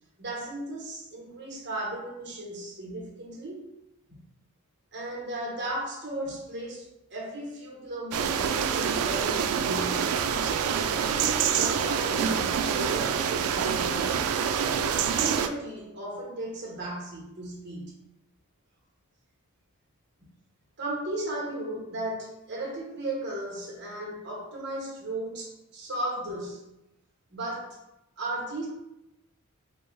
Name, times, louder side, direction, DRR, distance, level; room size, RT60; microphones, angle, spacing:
voice 1, 0.2-3.6 4.1-4.2 4.9-10.3 11.0-14.3 14.8-17.9 20.8-26.6 27.3-27.8 28.2-28.7, right 1 dB, 50° right, -3 dB, 1.3 m, -36 dB
sound 1, 8.1-15.5, right 7 dB, 80° right, 0.3 m, -26 dB
4.6 x 2.3 x 3.2 m, 0.89 s
head